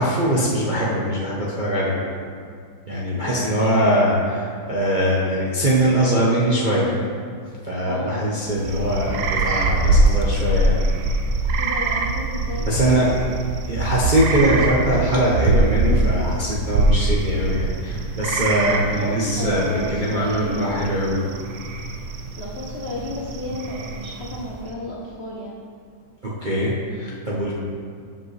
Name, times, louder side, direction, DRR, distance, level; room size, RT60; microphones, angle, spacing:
voice 1, 0.0-1.9 2.9-6.9 7.6-10.8 12.6-13.2 13.7-21.2 26.4-27.5, right 1 dB, 45° right, -6 dB, 0.6 m, -22 dB
voice 2, 3.2-3.9 7.7-8.3 11.6-12.7 13.1-13.2 18.5-20.9 22.4-25.6, left 1 dB, 65° left, -4 dB, 0.6 m, -32 dB
sound 1, 8.4-24.7, right 2 dB, 70° right, 0.9 m, -23 dB
13.5 x 5.1 x 3.2 m, 2.2 s
omnidirectional pair, 2.3 m